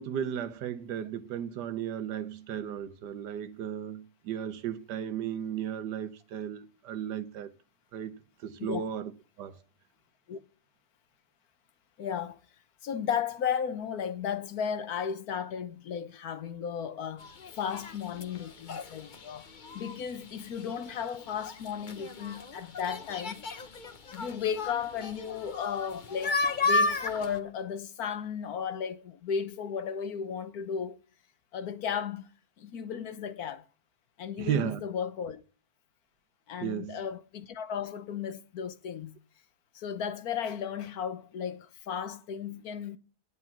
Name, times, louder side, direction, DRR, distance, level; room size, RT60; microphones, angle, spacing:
voice 1, 0.0-7.5 7.9-8.1 8.4-9.1 9.4-9.6 34.4-34.8 36.6-37.0, right 9 dB, 90° right, 1.5 m, -35 dB
voice 2, 12.0-12.4 12.8-17.3 17.5-19.5 19.7-23.4 24.1-26.4 26.6-31.0 31.5-32.3 32.6-33.6 34.2-35.4 36.5-39.2 39.7-43.0, left 7 dB, 65° left, 1.3 m, -34 dB
sound 1, 17.2-27.4, left 3 dB, 40° left, 0.8 m, -34 dB
10.5 x 9.8 x 5.9 m
omnidirectional pair, 1.8 m